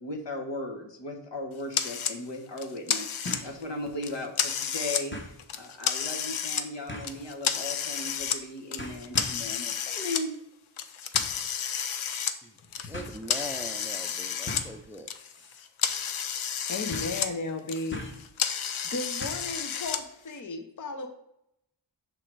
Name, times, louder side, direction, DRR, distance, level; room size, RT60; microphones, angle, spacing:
voice 1, 0.0-10.3, left 1 dB, 65° left, 1.4 m, -37 dB
sound 1, 1.3-1.4 3.3-3.6 4.0-4.1 5.1-5.4 6.9-7.2 8.2-8.4 8.8-9.5 11.1-11.5 12.4-12.5 12.9-13.2 14.5-14.8 15.3-15.6 15.8-15.9 16.9-17.3 17.9-18.3 19.2-19.6 19.9-20.0, left 1 dB, 25° left, 1.1 m, -39 dB
sound 2, 1.7-2.2 2.6-3.6 4.0-5.0 5.4-6.6 7.0-8.4 8.7-10.2 10.8-14.7 14.9-17.3 17.6-20.0, left 8 dB, 85° left, 0.7 m, -31 dB
voice 2, 12.9-15.1, equal, 5° right, 0.6 m, -40 dB
voice 3, 16.7-18.1 18.6-21.1, left 3 dB, 40° left, 0.8 m, -35 dB
6.1 x 3.8 x 4.6 m
wide cardioid pair, 70°, 47 cm